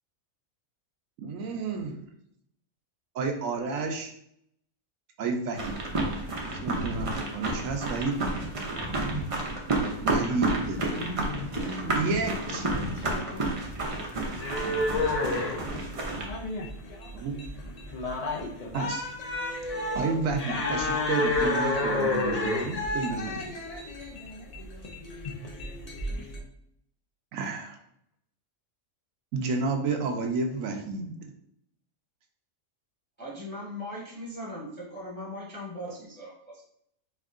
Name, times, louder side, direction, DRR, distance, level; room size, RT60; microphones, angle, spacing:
voice 1, 1.2-2.1 3.1-4.1 5.2-5.7 6.6-8.2 9.9-10.8 11.4-11.5 11.9-12.7 17.1-17.6 18.7-19.1 19.9-23.4 26.1-26.3 27.3-27.8 29.3-31.3, right 4 dB, 75° right, 1.0 m, -31 dB
sound 1, 5.5-16.3, right 2 dB, 45° right, 0.4 m, -31 dB
voice 2, 10.9-12.1 12.5-13.6, left 3 dB, 75° left, 1.1 m, -39 dB
sound 2, 14.3-26.4, left 2 dB, 50° left, 0.5 m, -30 dB
voice 3, 33.2-36.6, left 1 dB, 10° left, 0.8 m, -39 dB
4.4 x 2.7 x 2.4 m
omnidirectional pair, 1.4 m